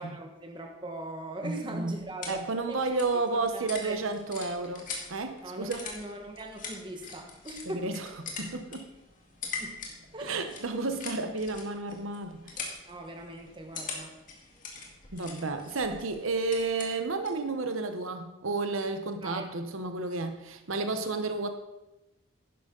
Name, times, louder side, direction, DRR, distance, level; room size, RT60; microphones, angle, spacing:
voice 1, 0.0-2.4 2.7-2.8 3.5-3.9 5.4-7.8 9.6-9.8 10.1-10.4 12.8-14.1 19.2-19.4, right 1 dB, 25° right, 2 dB, 1.4 m, -40 dB
voice 2, 1.4-2.0 2.2-5.9 7.6-8.9 10.2-12.8 15.1-21.5, right 3 dB, 85° right, 7 dB, 0.9 m, -32 dB
sound 1, 1.7-17.5, left 4 dB, 40° left, 1.9 m, -43 dB
11.5 x 10.0 x 3.9 m, 0.97 s
head